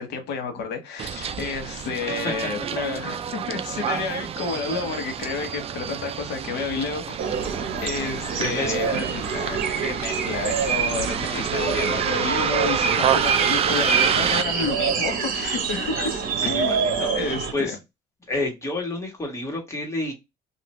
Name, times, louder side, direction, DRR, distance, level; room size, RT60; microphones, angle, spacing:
voice 1, 0.0-7.2 7.8-16.7 17.1-17.7, left 5 dB, 80° left, 1.0 m, -30 dB
Bus, 1.0-14.4, right 8 dB, 35° right, 0.4 m, -28 dB
voice 2, 2.1-2.5 8.3-9.0 11.2-12.1 16.4-17.8 18.3-20.1, left 2 dB, 15° left, 1.4 m, -30 dB
sound 1, 7.2-17.5, right 6 dB, 60° right, 0.9 m, -26 dB
2.8 x 2.5 x 3.1 m
cardioid pair, 110°, 17 cm